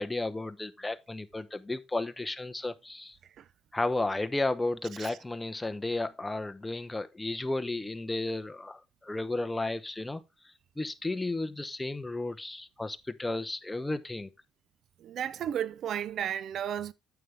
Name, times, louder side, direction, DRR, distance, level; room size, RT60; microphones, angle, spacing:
voice 1, 0.0-3.2 3.7-10.2 10.8-14.3, left 2 dB, 10° left, 0.9 m, -33 dB
voice 2, 15.0-16.9, right 10 dB, 60° right, 0.4 m, -33 dB
9.1 x 7.1 x 3.4 m
cardioid pair, 95°, 0 cm